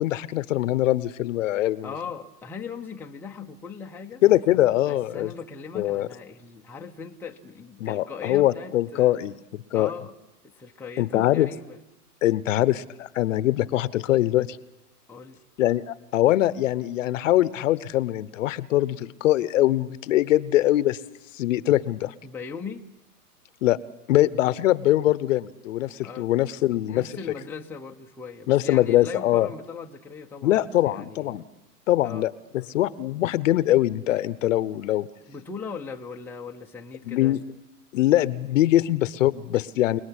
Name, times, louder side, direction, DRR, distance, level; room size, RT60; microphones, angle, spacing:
voice 1, 0.0-1.9 4.2-5.3 5.7-6.1 7.8-9.3 9.7-9.9 11.0-11.5 12.2-14.6 15.6-21.0 21.3-22.1 23.6-23.8 24.1-27.1 28.5-29.5 30.4-31.4 31.9-35.1 37.1-37.4 37.9-40.0, left 14 dB, 55° left, 18 dB, 1.1 m, -22 dB
voice 2, 1.8-4.2 4.8-9.4 9.7-10.1 10.4-11.8 15.1-15.4 22.2-22.9 26.0-26.3 26.9-31.4 32.0-32.3 35.3-37.4, left 5 dB, 5° left, 1 dB, 0.9 m, -39 dB
29.5 x 19.5 x 9.9 m, 0.93 s
hypercardioid pair, 140°, 47 cm